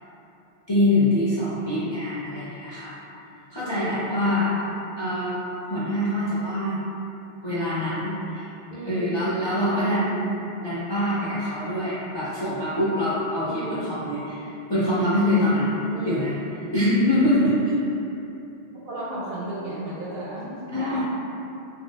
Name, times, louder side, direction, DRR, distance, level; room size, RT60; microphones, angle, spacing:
voice 1, 0.7-3.0 3.5-4.5 5.0-5.4 5.7-6.8 7.4-8.5 8.9-10.2 10.6-15.7 16.1-16.4 16.7-17.7 20.7-21.0, left 1 dB, 35° left, -11 dB, 0.4 m, -24 dB
voice 2, 3.6-4.6 8.7-9.3 9.7-9.9 13.4-13.9 15.9-16.3 18.7-21.0, right 1 dB, 65° right, -6 dB, 0.7 m, -34 dB
3.9 x 2.0 x 2.3 m, 2.8 s
omnidirectional pair, 1.1 m